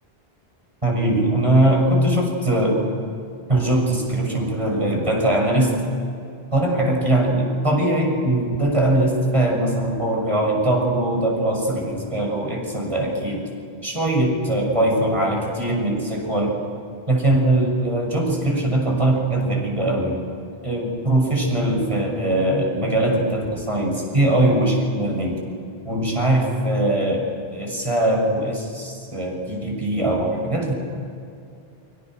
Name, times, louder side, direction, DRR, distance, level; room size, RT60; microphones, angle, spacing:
voice 1, 0.8-2.8 3.5-5.8 6.5-13.5 13.8-16.6 17.1-20.2 20.6-25.4 25.8-30.7, right 1 dB, 30° right, 0 dB, 6.4 m, -21 dB
30.0 x 25.0 x 6.4 m, 2.6 s
omnidirectional pair, 1.0 m